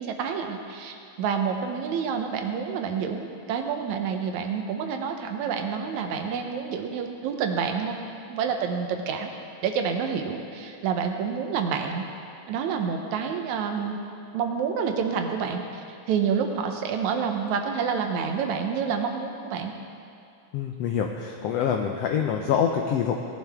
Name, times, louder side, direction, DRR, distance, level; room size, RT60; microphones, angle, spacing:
voice 1, 0.0-8.0 8.3-9.3 9.6-12.1 12.5-14.0 14.3-19.7, right 6 dB, 75° right, 4 dB, 2.1 m, -28 dB
voice 2, 20.5-23.2, left 7 dB, 90° left, 3 dB, 1.4 m, -25 dB
18.5 x 10.5 x 3.5 m, 2.5 s
omnidirectional pair, 3.5 m